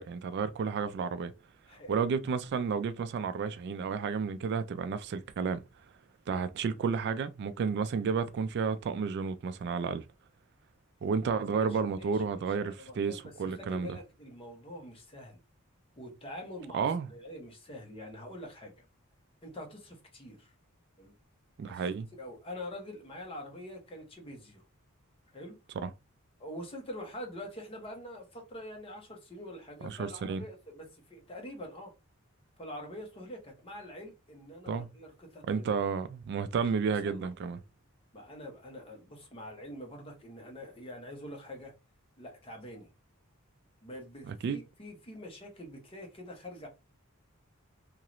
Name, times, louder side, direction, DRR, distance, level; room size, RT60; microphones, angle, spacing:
voice 1, 0.0-1.3 1.9-5.6 6.3-10.0 11.0-14.0 16.7-17.1 21.6-22.1 25.8-25.9 29.8-30.4 34.7-34.9 35.5-37.6 44.3-44.6, right 5 dB, 55° right, 0.3 m, -31 dB
voice 2, 11.5-15.4 16.0-16.8 17.1-18.8 19.4-20.5 21.0-21.1 21.6-21.9 22.2-24.6 25.3-25.6 26.4-31.9 32.6-35.8 37.0-37.3 38.1-41.7 42.2-42.9 43.8-46.7, left 1 dB, 25° left, 0.9 m, -45 dB
2.8 x 2.5 x 3.0 m
head